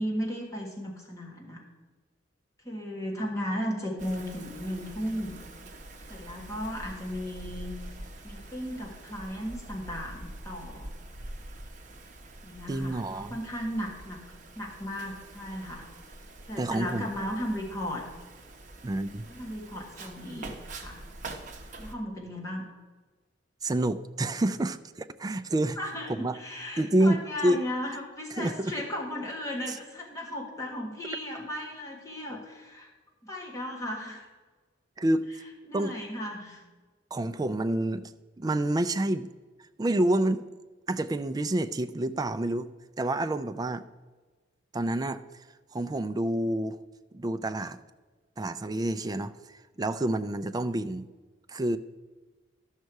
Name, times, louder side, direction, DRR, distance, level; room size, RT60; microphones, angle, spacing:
voice 1, 0.0-1.6 2.6-5.4 6.1-7.7 8.2-10.9 12.4-14.2 14.5-15.9 16.5-18.0 19.3-21.0 21.8-22.6 25.8-32.9 33.2-34.3 35.7-36.6 50.6-50.7, equal, 15° left, -2 dB, 1.4 m, -35 dB
Wind, 4.0-21.9, right 2 dB, 40° right, 1.0 m, -45 dB
voice 2, 12.7-13.4 16.6-17.1 18.8-19.3 23.6-25.8 26.1-26.4 26.8-27.6 28.4-28.7 29.7-29.8 35.0-35.3 35.7-36.0 37.1-38.1 38.4-39.3 39.8-40.4 40.9-42.7 43.0-43.8 44.7-45.2 45.7-46.8 47.1-47.8 48.4-51.1 51.5-51.8, right 1 dB, 20° right, 12 dB, 0.3 m, -28 dB
12.5 x 6.5 x 4.6 m, 1.3 s
head